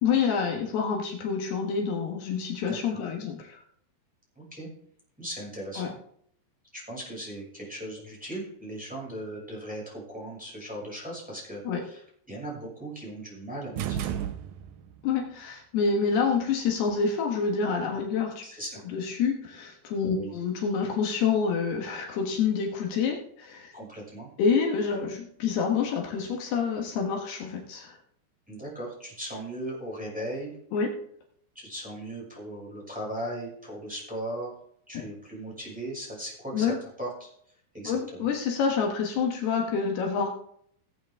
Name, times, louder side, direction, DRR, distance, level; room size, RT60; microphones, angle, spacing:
voice 1, 0.0-3.6 5.8-5.9 11.6-11.8 15.0-18.4 18.9-23.7 24.4-28.0 30.7-30.9 34.9-35.0 36.5-36.8 37.8-40.3, left 5 dB, 75° left, 1 dB, 3.4 m, -27 dB
voice 2, 2.7-3.0 4.4-4.7 5.2-5.9 6.7-14.1 18.4-18.8 20.1-20.3 23.7-24.3 28.5-30.5 31.5-34.5 34.9-37.3 37.7-38.3, right 1 dB, ahead, -5 dB, 5.8 m, -38 dB
sound 1, 13.8-15.0, right 10 dB, 90° right, 1.8 m, -32 dB
18.0 x 8.7 x 3.6 m, 0.66 s
omnidirectional pair, 4.8 m